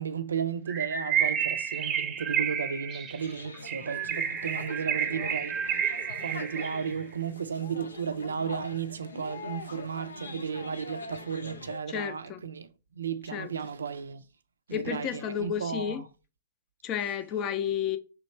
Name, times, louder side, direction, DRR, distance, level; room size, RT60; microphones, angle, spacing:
voice 1, 0.0-5.9 6.2-14.3 14.7-16.0, right 6 dB, 80° right, 0.3 m, -34 dB
Bird, 0.7-7.0, right 8 dB, 25° right, 0.7 m, -30 dB
sound 1, 3.2-11.8, left 3 dB, 85° left, 0.5 m, -43 dB
voice 2, 11.9-12.4 13.3-13.5 14.7-16.0 16.8-18.0, left 9 dB, 35° left, 0.5 m, -31 dB
3.3 x 3.1 x 4.3 m
hypercardioid pair, 110°, 0 cm